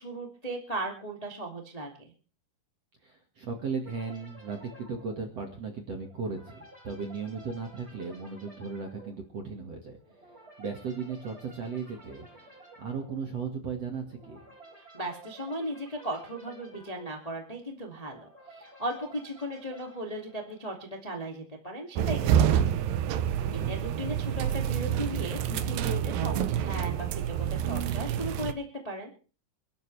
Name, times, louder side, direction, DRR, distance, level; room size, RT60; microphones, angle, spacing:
voice 1, 0.0-2.1 14.9-22.7 23.5-29.1, right 1 dB, 15° left, 1 dB, 1.3 m, -37 dB
voice 2, 3.0-10.0 10.6-14.5 23.5-23.7, right 5 dB, 45° right, 2 dB, 2.2 m, -36 dB
sound 1, 3.8-21.0, right 2 dB, 15° right, 4.2 m, -53 dB
sound 2, 22.0-28.5, right 9 dB, 90° right, 2.0 m, -28 dB
28.5 x 12.5 x 3.4 m, 0.38 s
omnidirectional pair, 5.4 m